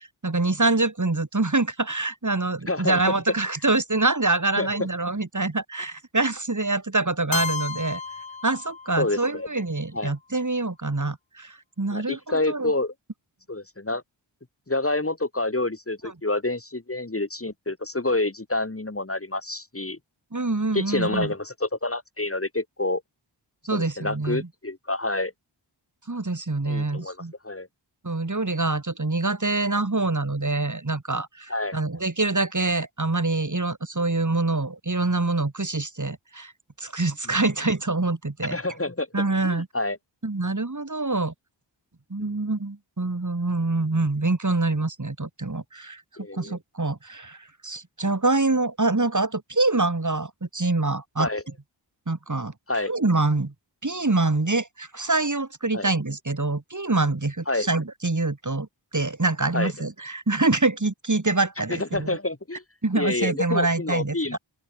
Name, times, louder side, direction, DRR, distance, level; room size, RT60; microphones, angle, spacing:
voice 1, 0.2-8.0 8.4-12.7 20.3-21.3 23.7-24.5 26.1-27.3 28.0-36.5 36.8-38.6 39.1-39.7 40.2-41.3 42.1-46.0 46.3-51.3 52.1-52.5 52.9-53.5 53.8-58.7 58.9-62.1 62.8-64.4, right 2 dB, 40° right, 7.2 m, -25 dB
voice 2, 2.7-3.0 4.6-4.7 9.0-9.5 9.9-10.1 11.9-12.9 13.5-14.0 14.7-20.0 20.7-23.0 23.7-25.3 26.7-27.2 27.4-27.7 31.5-31.8 38.5-39.1 39.4-40.0 42.2-42.3 46.2-46.6 51.2-51.4 52.7-52.9 55.7-55.9 57.5-57.7 59.5-59.7 61.8-62.6 62.9-64.4, left 2 dB, 30° left, 3.3 m, -28 dB
Keyboard (musical), 7.3-9.3, left 4 dB, 85° left, 6.1 m, -32 dB
open air
wide cardioid pair, 75°, 45 cm